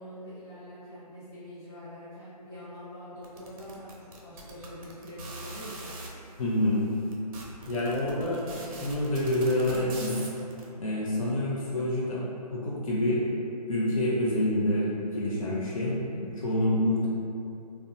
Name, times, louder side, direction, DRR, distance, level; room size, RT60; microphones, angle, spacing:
voice 1, 0.0-6.0, equal, 20° left, -15 dB, 1.0 m, -44 dB
sound 1, 3.2-6.1 6.8-6.9 7.1-10.6, right 2 dB, 55° right, 0.5 m, -42 dB
voice 2, 6.4-6.9 7.7-10.3 10.8-12.2 12.5-13.2 13.7-17.1, left 1 dB, 55° left, -6 dB, 0.5 m, -27 dB
2.4 x 2.1 x 2.7 m, 2.6 s
figure-of-eight pair, 140°, 21 cm